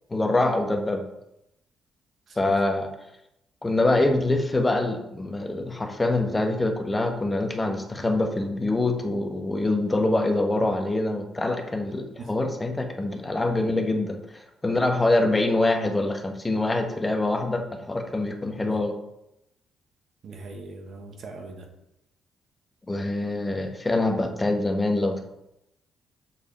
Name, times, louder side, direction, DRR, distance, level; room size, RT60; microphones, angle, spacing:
voice 1, 0.1-1.0 2.4-2.9 3.6-14.2 14.6-18.9 22.9-25.2, left 2 dB, 20° left, 4 dB, 1.1 m, -25 dB
voice 2, 2.3-2.6 12.2-12.3 18.6-18.8 20.2-21.7, right 3 dB, 60° right, 3 dB, 1.5 m, -41 dB
7.1 x 5.1 x 4.3 m, 0.84 s
cardioid pair, 90°, 0 cm